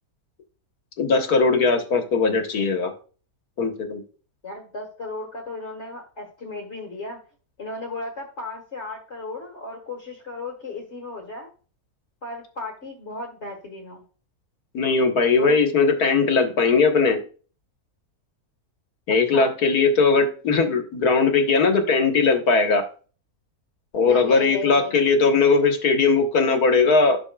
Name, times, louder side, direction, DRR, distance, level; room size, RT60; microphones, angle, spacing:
voice 1, 1.0-2.9 3.6-4.0 14.7-17.2 19.1-22.8 23.9-27.2, left 4 dB, 90° left, 5 dB, 1.9 m, -19 dB
voice 2, 4.4-7.2 7.6-11.5 12.2-14.0 15.3-15.6 19.1-19.5 24.0-25.0, left 3 dB, 50° left, 1 dB, 2.0 m, -35 dB
12.0 x 6.6 x 2.3 m, 0.38 s
omnidirectional pair, 1.6 m